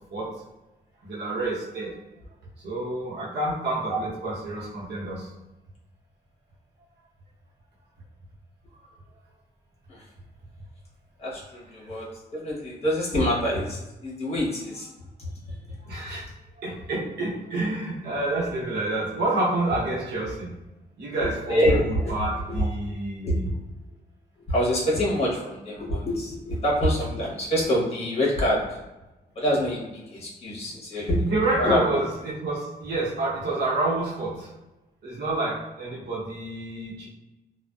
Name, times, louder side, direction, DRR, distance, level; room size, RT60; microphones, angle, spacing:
voice 1, 0.1-0.4 1.0-2.0 2.6-5.3 15.9-16.3 16.6-20.5 21.0-23.5 30.9-34.5 35.0-37.1, right 2 dB, 75° right, -5 dB, 0.9 m, -29 dB
voice 2, 11.2-12.1 12.3-14.9 15.7-15.8 21.2-22.1 22.5-22.6 23.2-23.5 24.5-28.6 29.3-31.2 31.6-32.0, equal, 35° left, -5 dB, 1.0 m, -25 dB
2.4 x 2.2 x 2.2 m, 1.0 s
cardioid pair, 115°, 17 cm